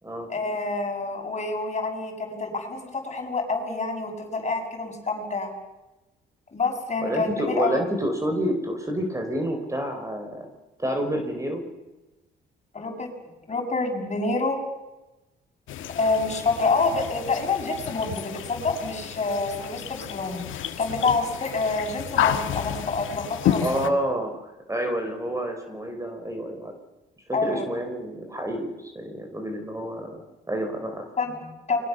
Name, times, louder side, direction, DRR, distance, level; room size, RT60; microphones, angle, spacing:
voice 1, 0.3-5.5 6.5-7.8 12.7-13.1 13.5-14.6 15.9-23.9 27.3-27.6 31.2-31.8, left 3 dB, 35° left, 3 dB, 6.7 m, -27 dB
voice 2, 7.0-10.5 10.8-11.6 23.6-26.7 27.4-31.1, right 1 dB, 15° right, 5 dB, 4.4 m, -29 dB
sound 1, 15.7-23.9, left 10 dB, 80° left, 1.9 m, -31 dB
29.0 x 22.5 x 7.0 m, 1.1 s
cardioid pair, 90°, 20 cm